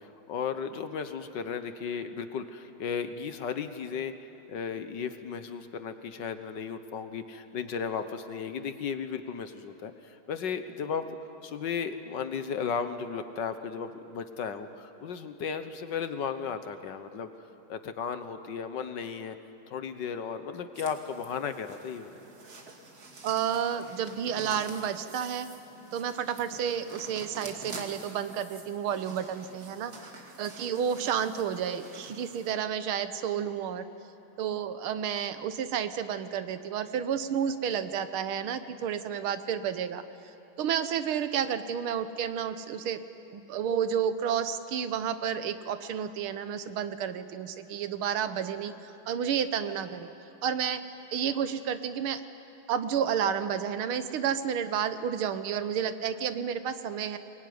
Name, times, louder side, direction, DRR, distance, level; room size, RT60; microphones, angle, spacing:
voice 1, 0.0-11.2 11.4-17.3 17.7-19.4 19.7-22.1, left 6 dB, 60° left, 9 dB, 1.7 m, -35 dB
sound 1, 20.7-32.5, right 3 dB, 45° right, 2.6 m, -47 dB
voice 2, 23.2-25.5 25.9-29.9 30.4-33.9 34.4-40.0 40.6-43.0 43.3-50.1 50.4-50.8 51.1-52.2 52.7-57.2, right 8 dB, 90° right, 11 dB, 1.9 m, -31 dB
23.0 x 22.0 x 9.6 m, 2.9 s
omnidirectional pair, 2.3 m